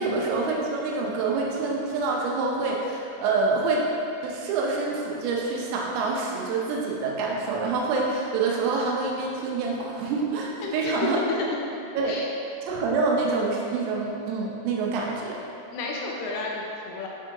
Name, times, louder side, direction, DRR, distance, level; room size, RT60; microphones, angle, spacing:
voice 1, 0.0-3.9 4.2-11.2 12.0-12.1 12.7-15.4, right 3 dB, 85° right, -2 dB, 3.3 m, -26 dB
voice 2, 10.6-11.1 12.0-12.3 15.7-17.1, left 3 dB, 85° left, -2 dB, 3.0 m, -32 dB
10.0 x 3.7 x 2.6 m, 2.9 s
omnidirectional pair, 5.8 m